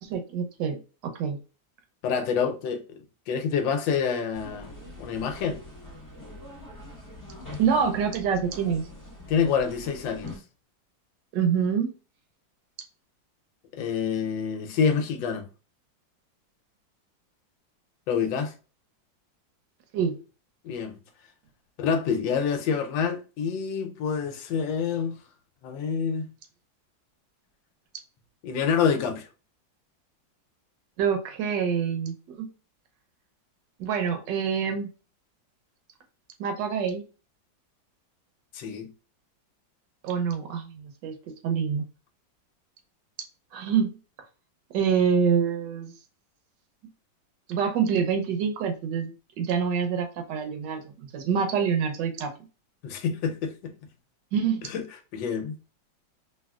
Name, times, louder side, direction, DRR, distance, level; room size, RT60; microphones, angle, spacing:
voice 1, 0.0-1.4 7.6-8.8 11.3-11.9 19.9-20.2 31.0-32.5 33.8-34.9 36.4-37.0 40.0-41.1 41.4-41.8 43.5-43.9 44.7-45.9 47.5-49.1 49.4-52.3 54.3-54.7, right 7 dB, 75° right, 1.3 m, -26 dB
voice 2, 2.0-2.8 3.3-4.7 5.0-5.6 9.3-10.4 13.7-15.5 18.1-18.5 20.6-21.0 21.8-25.2 25.6-26.3 28.4-29.3 38.5-38.9 52.8-53.7 54.6-54.8 55.1-55.6, left 6 dB, 80° left, 1.3 m, -27 dB
sound 1, 4.3-10.4, left 2 dB, 15° left, 0.8 m, -43 dB
3.4 x 2.4 x 2.3 m
omnidirectional pair, 2.0 m